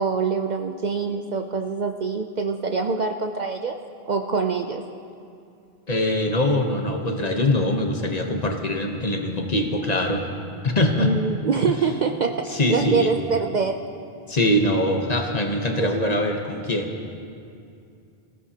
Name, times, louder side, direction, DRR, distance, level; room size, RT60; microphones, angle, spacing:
voice 1, 0.0-3.8 4.1-4.8 11.0-13.8 15.8-15.9, right 5 dB, 55° right, 5 dB, 0.6 m, -25 dB
voice 2, 5.9-10.3 10.6-11.1 11.7-11.8 12.5-13.1 14.3-16.9, left 1 dB, 40° left, 3 dB, 1.0 m, -23 dB
19.0 x 15.5 x 2.9 m, 2.4 s
omnidirectional pair, 1.1 m